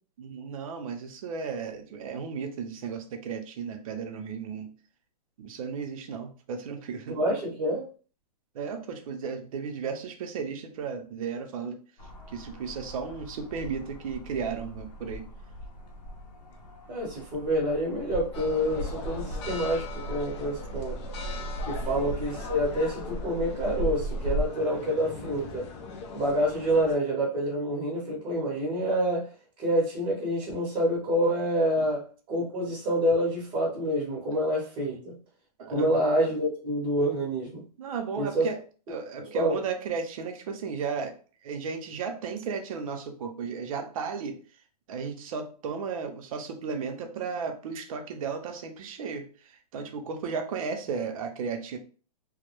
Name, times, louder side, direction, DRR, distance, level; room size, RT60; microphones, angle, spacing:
voice 1, 0.2-4.7 5.4-7.2 8.5-11.8 12.3-15.2 17.3-17.4 21.8-22.0 31.8-31.9 34.9-35.0 35.6-36.1 37.8-38.6 38.9-41.2 41.4-44.4 44.9-51.8, right 5 dB, 55° right, 6 dB, 0.5 m, -34 dB
voice 2, 7.1-7.8 16.9-21.0 21.7-25.7 26.1-29.3 29.6-32.0 32.3-35.2 35.7-37.6 38.2-38.4 39.3-39.6, equal, 25° right, -5 dB, 0.7 m, -27 dB
sound 1, 12.0-24.5, equal, 85° left, 0.7 m, -37 dB
sound 2, 18.3-27.0, left 4 dB, 45° left, 0.5 m, -41 dB
2.2 x 2.0 x 2.9 m, 0.39 s
hypercardioid pair, 150°, 21 cm